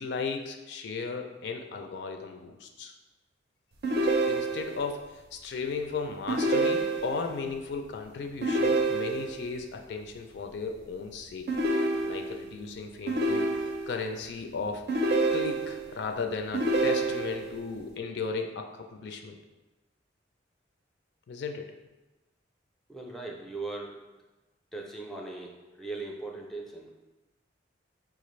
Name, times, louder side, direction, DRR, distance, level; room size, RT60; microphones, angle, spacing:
voice 1, 0.0-2.9 4.1-11.5 12.0-13.6 13.9-15.0 15.3-19.4 21.3-21.7, left 4 dB, 65° left, 4 dB, 0.4 m, -35 dB
sound 1, 3.8-4.9 6.3-7.3 8.4-9.5 11.5-12.5 13.1-14.0 14.9-15.9 16.5-17.6, right 2 dB, 60° right, 0.5 m, -27 dB
voice 2, 22.9-24.0 24.7-27.0, right 3 dB, ahead, -1 dB, 0.4 m, -39 dB
4.8 x 2.4 x 3.1 m, 1.1 s
head